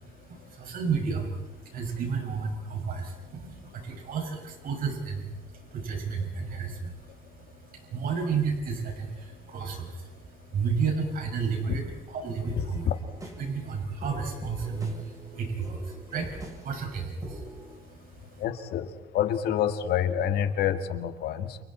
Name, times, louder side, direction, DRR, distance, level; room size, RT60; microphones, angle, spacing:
voice 1, 0.0-12.9 13.4-18.4, right 5 dB, 60° right, 2 dB, 6.4 m, -32 dB
sound 1, 12.4-17.8, right 1 dB, 20° right, 7.6 m, -43 dB
voice 2, 12.6-12.9 18.4-18.9 19.1-21.6, left 9 dB, 70° left, 8 dB, 2.0 m, -27 dB
30.0 x 29.0 x 4.4 m, 1.2 s
cardioid pair, 110°, 17 cm